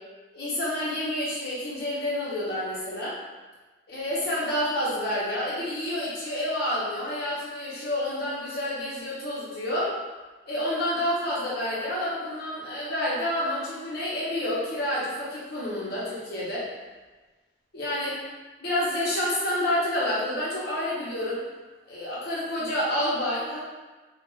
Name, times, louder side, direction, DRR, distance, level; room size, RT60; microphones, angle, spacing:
voice 1, 0.3-3.2 3.9-9.9 10.5-16.7 17.7-18.2 18.6-21.4 21.9-23.6, left 1 dB, 55° left, -7 dB, 0.8 m, -29 dB
2.4 x 2.3 x 3.0 m, 1.3 s
head